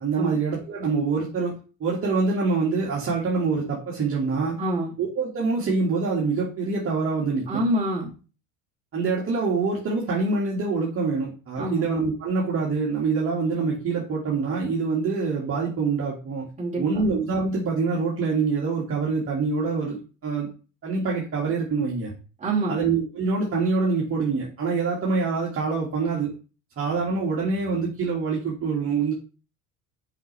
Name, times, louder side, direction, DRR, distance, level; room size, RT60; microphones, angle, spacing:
voice 1, 0.0-1.5 1.8-4.6 5.0-7.6 8.9-16.5 16.8-20.0 20.2-20.5 20.8-22.1 22.7-26.3 26.8-29.1, right 4 dB, 35° right, -4 dB, 2.0 m, -25 dB
voice 2, 4.6-4.9 7.5-8.1 11.6-11.8 16.6-17.0 22.4-22.8, right 1 dB, 20° right, -4 dB, 2.7 m, -26 dB
5.7 x 5.5 x 3.3 m, 0.36 s
hypercardioid pair, 90°, 39 cm